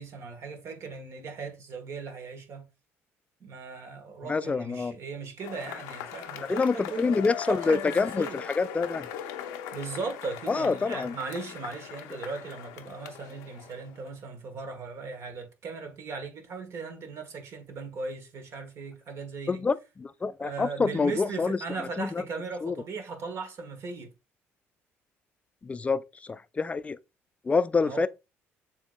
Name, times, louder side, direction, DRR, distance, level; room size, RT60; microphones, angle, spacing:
voice 1, 0.0-2.7 3.4-8.4 9.7-19.6 20.4-24.1 27.8-28.1, right 4 dB, 55° right, 1.2 m, -38 dB
voice 2, 4.2-5.0 6.4-9.1 10.5-11.2 19.5-21.6 22.0-22.2 22.6-22.8 25.6-27.0 27.4-28.1, left 4 dB, 25° left, 0.3 m, -27 dB
Cheering / Applause / Crowd, 5.4-14.1, left 9 dB, 90° left, 0.5 m, -40 dB
6.8 x 2.7 x 2.3 m
supercardioid pair, 75°, 6 cm